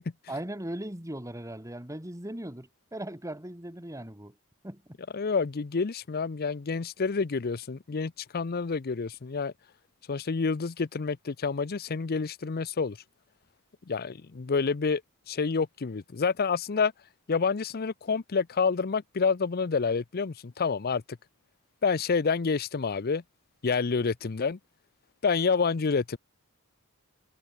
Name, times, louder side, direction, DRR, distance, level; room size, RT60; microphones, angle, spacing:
voice 1, 0.3-4.3 4.6-5.0, right 1 dB, 15° right, 3.3 m, -38 dB
voice 2, 5.1-9.5 10.1-13.0 13.9-15.0 15.3-16.9 17.3-21.0 21.8-23.2 23.6-24.6 25.2-26.2, left 5 dB, 45° left, 0.6 m, -28 dB
head